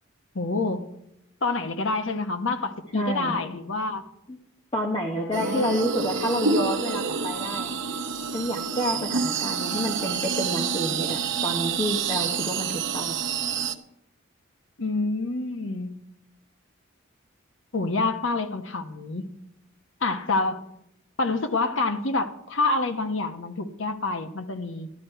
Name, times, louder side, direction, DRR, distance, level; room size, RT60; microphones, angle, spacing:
voice 1, 0.3-0.9 1.4-4.0 5.2-5.8 14.8-16.0 17.7-19.3 20.0-20.6 21.2-24.9, left 3 dB, 65° left, 7 dB, 1.0 m, -27 dB
voice 2, 2.9-3.5 4.7-7.7 8.3-12.7 12.9-13.1, equal, 25° left, 1 dB, 1.1 m, -29 dB
sound 1, 5.3-13.7, right 5 dB, 60° right, 0.7 m, -28 dB
13.0 x 11.5 x 4.5 m, 0.79 s
head